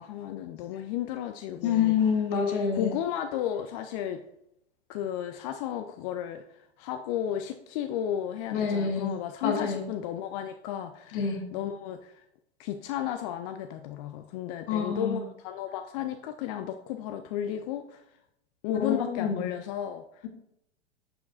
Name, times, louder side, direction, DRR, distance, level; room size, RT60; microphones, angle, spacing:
voice 1, 0.0-1.9 2.7-4.2 4.9-6.4 6.8-12.1 12.6-18.0 18.6-20.0, left 10 dB, 35° left, 7 dB, 0.4 m, -33 dB
voice 2, 1.6-2.9 8.5-9.1 9.4-9.8 11.1-11.4 14.7-15.2 18.7-19.4, left 6 dB, 55° left, 3 dB, 1.7 m, -27 dB
13.5 x 4.9 x 2.5 m, 0.82 s
figure-of-eight pair, 100°, 33 cm